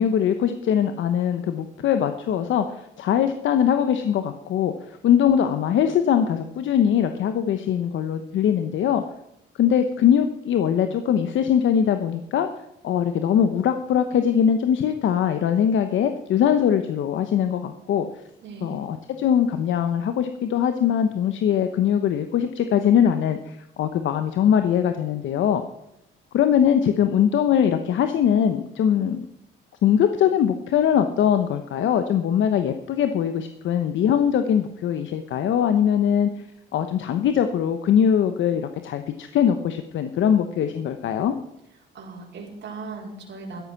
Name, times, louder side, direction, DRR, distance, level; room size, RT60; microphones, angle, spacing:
voice 1, 0.0-9.0 9.6-12.5 12.8-18.1 18.6-25.6 26.3-29.2 29.8-36.3 36.7-41.4, left 9 dB, 75° left, 8 dB, 1.0 m, -21 dB
voice 2, 18.4-18.8 41.9-43.6, right 3 dB, 60° right, -3 dB, 4.4 m, -37 dB
13.0 x 11.5 x 6.0 m, 0.82 s
cardioid pair, 90°, 20 cm